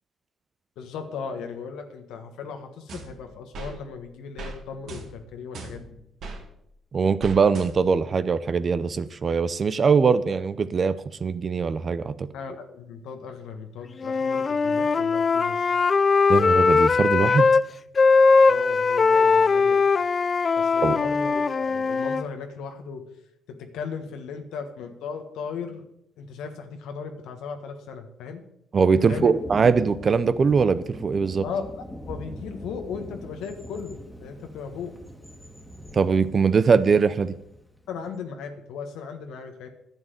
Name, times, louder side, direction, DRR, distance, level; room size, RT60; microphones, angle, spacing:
voice 1, 0.8-6.0 12.3-15.7 18.5-19.8 20.6-23.0 23.5-25.8 26.2-28.4 29.1-29.3 31.4-34.9 37.9-39.7, left 6 dB, 90° left, 5 dB, 1.4 m, -37 dB
sound 1, 2.9-3.7 4.4-4.6 4.9-6.4 7.2-8.0, right 3 dB, 70° right, 2.4 m, -39 dB
voice 2, 6.9-11.0 11.2-12.3 16.3-17.5 20.8-21.0 28.7-31.4 35.9-37.3, right 5 dB, 40° right, 14 dB, 0.6 m, -21 dB
Wind instrument woodwind instrument, 14.0-17.6 18.0-22.2, left 4 dB, 40° left, 0.4 m, -20 dB
Thunder, 29.1-38.1, equal, 5° left, 2.0 m, -41 dB
10.5 x 7.4 x 7.9 m, 0.78 s
cardioid pair, 90°, 0 cm